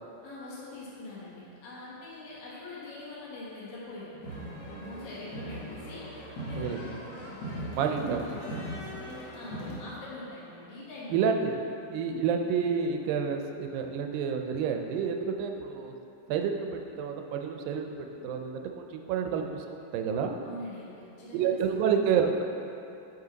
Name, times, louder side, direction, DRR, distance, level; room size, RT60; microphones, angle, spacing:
voice 1, 0.2-4.2 4.8-6.1 6.5-7.0 8.8-11.3 20.4-21.8, left 2 dB, 80° left, -7 dB, 3.1 m, -44 dB
sound 1, 4.2-9.8, equal, 60° left, 1.8 m, -39 dB
voice 2, 7.7-8.4 11.1-11.6 11.9-15.9 16.3-19.6 19.9-20.3 21.3-22.4, right 6 dB, 85° right, 4 dB, 2.3 m, -29 dB
8.3 x 5.5 x 3.9 m, 2.8 s
omnidirectional pair, 4.0 m